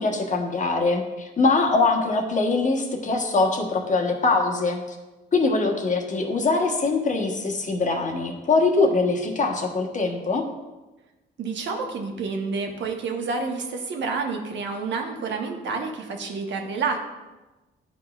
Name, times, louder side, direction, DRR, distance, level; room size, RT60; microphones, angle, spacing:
voice 1, 0.0-5.0 5.3-10.5, left 3 dB, 40° left, 2 dB, 1.2 m, -23 dB
voice 2, 11.4-17.0, right 4 dB, 65° right, 3 dB, 1.1 m, -29 dB
11.0 x 5.1 x 2.4 m, 1.1 s
cardioid pair, 90°, 20 cm